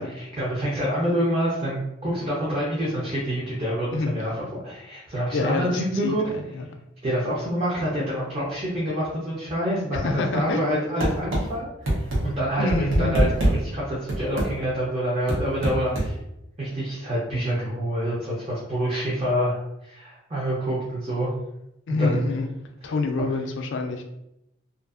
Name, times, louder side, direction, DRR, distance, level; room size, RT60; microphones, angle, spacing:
voice 1, 0.2-6.2 7.0-11.7 12.0-13.2 13.6-16.1 16.6-21.3 22.0-22.3 23.2-23.3, equal, 30° right, -7 dB, 0.6 m, -27 dB
voice 2, 5.3-6.6 9.9-10.7 12.5-13.2 21.9-22.5 22.8-24.0, left 3 dB, 65° left, 5 dB, 0.4 m, -27 dB
sound 1, 11.0-11.4 11.9-12.2 12.7-13.5 14.1-14.5 15.3-16.1, right 1 dB, 75° right, 0.9 m, -22 dB
2.5 x 2.4 x 2.4 m, 0.85 s
head